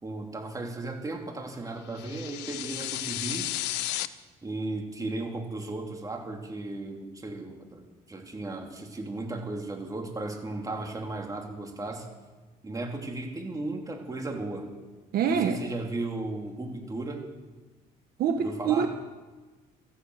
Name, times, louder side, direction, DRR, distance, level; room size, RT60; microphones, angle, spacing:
voice 1, 0.0-3.5 4.4-12.1 12.6-14.7 15.3-17.2 18.4-18.9, right 2 dB, 20° right, 2 dB, 2.9 m, -35 dB
sound 1, 1.9-4.1, left 15 dB, 90° left, 0.7 m, -33 dB
voice 2, 15.1-15.6 18.2-18.9, right 7 dB, 65° right, 7 dB, 1.1 m, -25 dB
14.5 x 11.5 x 8.0 m, 1.3 s
cardioid pair, 110°, 17 cm